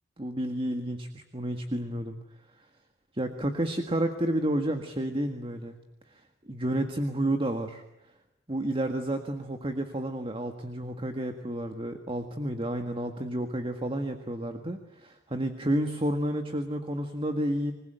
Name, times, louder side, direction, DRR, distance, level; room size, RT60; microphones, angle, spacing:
voice 1, 0.2-2.2 3.1-5.8 6.1-7.8 8.5-17.7, right 1 dB, 30° right, 6 dB, 1.7 m, -31 dB
26.5 x 20.5 x 9.1 m, 0.93 s
head